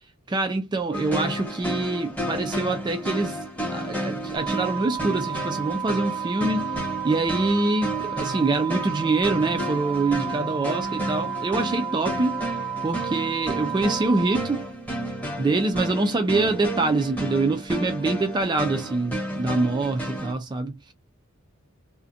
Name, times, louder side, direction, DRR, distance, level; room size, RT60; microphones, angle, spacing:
voice 1, 0.3-6.7 7.0-12.4 12.8-14.6 15.4-20.9, right 3 dB, 20° right, 0.3 m, -25 dB
sound 1, 0.9-20.3, right 1 dB, 5° left, 1.0 m, -32 dB
sound 2, 4.4-14.4, right 9 dB, 80° left, 1.1 m, -32 dB
2.4 x 2.1 x 2.6 m
head